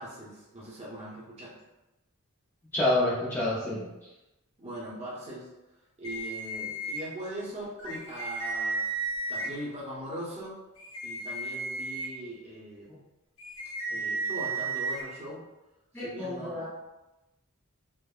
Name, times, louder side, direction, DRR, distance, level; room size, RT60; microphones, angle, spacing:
voice 1, 0.0-1.5 4.6-5.5 6.0-8.8 9.3-10.6 11.0-12.9 13.9-15.4 15.9-16.7, right 1 dB, 30° right, -6 dB, 0.8 m, -40 dB
voice 2, 2.7-3.9 15.9-16.7, left 1 dB, 10° left, -8 dB, 0.4 m, -28 dB
sound 1, 6.0-7.0 7.8-9.5 10.8-12.1 13.4-15.0, right 3 dB, 70° left, 0.8 m, -33 dB
3.5 x 2.1 x 2.2 m, 0.99 s
head